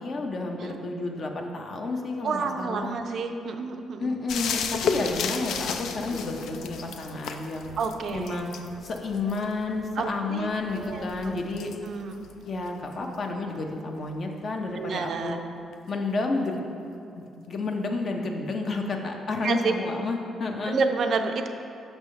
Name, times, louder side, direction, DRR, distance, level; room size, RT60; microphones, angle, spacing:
voice 1, 0.0-3.0 4.0-7.7 8.1-8.5 8.8-11.7 12.4-15.4 15.9-16.6 17.2-20.8, left 3 dB, 50° left, 2 dB, 0.7 m, -30 dB
voice 2, 2.2-4.1 7.8-8.4 10.0-10.5 10.8-11.1 11.8-12.2 14.8-15.4 19.4-19.7 20.7-21.5, right 4 dB, 60° right, 6 dB, 0.4 m, -29 dB
sound 1, 4.3-13.7 15.7-15.8, left 6 dB, 80° left, 0.3 m, -35 dB
6.1 x 3.4 x 5.5 m, 2.7 s
cardioid pair, 90°, 0 cm